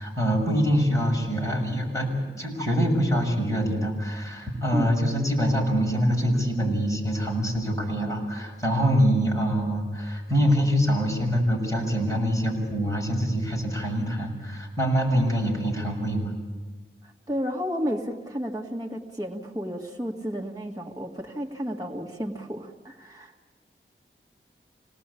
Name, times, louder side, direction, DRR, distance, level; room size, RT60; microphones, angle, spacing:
voice 1, 0.0-2.1 2.4-16.3, equal, 15° left, -1 dB, 7.2 m, -24 dB
voice 2, 17.0-23.3, equal, 15° right, 0 dB, 2.0 m, -32 dB
27.0 x 19.0 x 8.5 m, 1.3 s
wide cardioid pair, 75°, 21 cm